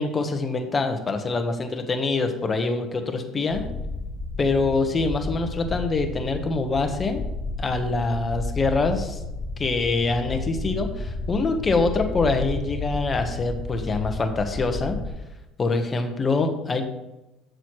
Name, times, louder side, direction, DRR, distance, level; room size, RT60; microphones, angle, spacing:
voice 1, 0.0-3.7 4.4-7.2 7.6-9.2 9.6-15.0 15.6-16.8, left 3 dB, 30° left, 6 dB, 1.2 m, -25 dB
sound 1, 3.5-15.1, left 2 dB, 55° left, 0.9 m, -32 dB
7.8 x 6.9 x 3.2 m, 1.0 s
supercardioid pair, 95°, 0 cm